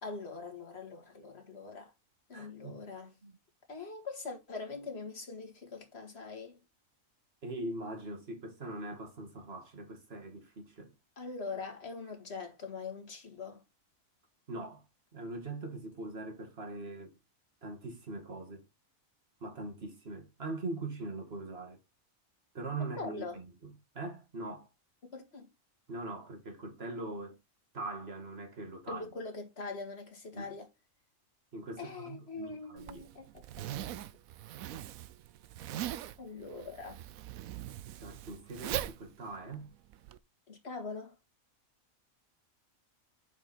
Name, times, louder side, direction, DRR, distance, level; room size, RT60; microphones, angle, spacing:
voice 1, 0.0-1.9 2.3-3.1 3.7-6.6 11.2-13.6 22.8-23.4 25.1-25.5 28.9-30.7 31.8-33.7 36.2-37.0 40.5-41.2, left 4 dB, 50° left, 2.2 m, -42 dB
voice 2, 2.3-2.8 3.2-3.3 7.4-10.9 14.5-14.8 15.1-17.2 17.6-18.6 19.4-21.8 22.5-24.7 25.9-27.4 27.7-29.1 30.3-30.5 31.5-33.1 38.0-39.7, right 2 dB, 45° right, 2.2 m, -42 dB
Zipper (clothing), 32.8-40.2, right 12 dB, 85° right, 1.0 m, -41 dB
7.2 x 5.4 x 4.2 m
omnidirectional pair, 1.4 m